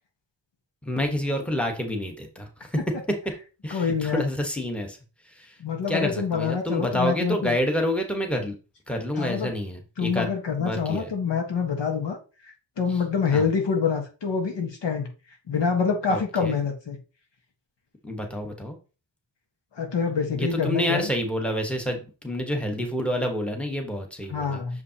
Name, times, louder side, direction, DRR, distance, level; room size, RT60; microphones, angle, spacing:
voice 1, 0.8-2.8 3.1-3.2 3.6-5.0 5.2-5.6 5.9-8.5 8.9-10.3 10.6-11.1 13.3-13.5 16.1-16.6 18.0-18.8 20.3-24.6, equal, 5° left, 3 dB, 1.2 m, -28 dB
voice 2, 3.7-4.2 5.6-7.6 9.2-9.5 10.0-12.2 12.4-15.1 15.5-17.0 19.7-21.1 24.3-24.8, left 6 dB, 80° left, 3 dB, 1.5 m, -26 dB
6.7 x 5.0 x 2.9 m, 0.33 s
wide cardioid pair, 110°, 42 cm